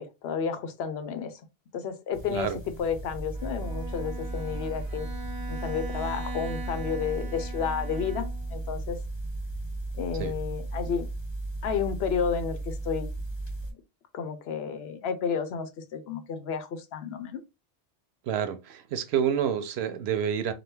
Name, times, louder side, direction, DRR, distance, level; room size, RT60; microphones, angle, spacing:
voice 1, 0.0-1.4 1.7-2.5 2.8-5.1 5.5-9.0 9.9-11.1 11.6-13.1 13.7-13.8 14.1-17.4, left 6 dB, 80° left, 0.9 m, -31 dB
sound 1, 2.1-13.7, right 2 dB, 25° left, 1.4 m, -35 dB
Bowed string instrument, 3.3-8.6, right 1 dB, 30° right, 0.4 m, -41 dB
voice 2, 18.2-20.5, right 8 dB, 85° right, 0.8 m, -28 dB
2.9 x 2.3 x 3.4 m
omnidirectional pair, 1.1 m